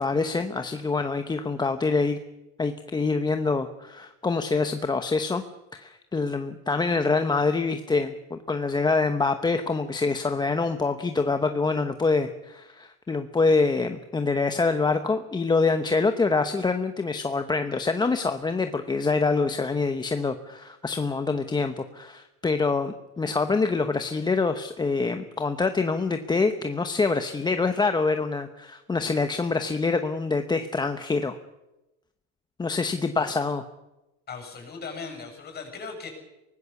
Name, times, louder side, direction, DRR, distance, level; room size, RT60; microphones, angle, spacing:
voice 1, 0.0-2.2 2.6-5.4 5.7-31.4 32.6-33.6, left 4 dB, 15° left, 8 dB, 1.0 m, -25 dB
voice 2, 34.3-36.1, left 5 dB, 30° left, 5 dB, 7.3 m, -38 dB
24.0 x 19.5 x 7.1 m, 0.98 s
cardioid pair, 135°, 32 cm